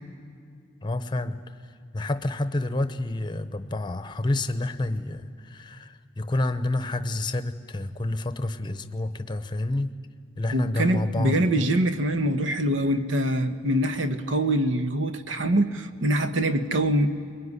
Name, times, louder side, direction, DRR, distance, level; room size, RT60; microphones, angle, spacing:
voice 1, 0.8-1.4 1.9-10.0 10.4-11.7, left 2 dB, 25° left, 11 dB, 0.8 m, -29 dB
voice 2, 10.5-17.1, right 1 dB, 80° right, 9 dB, 1.2 m, -24 dB
22.0 x 21.5 x 9.8 m, 2.3 s
head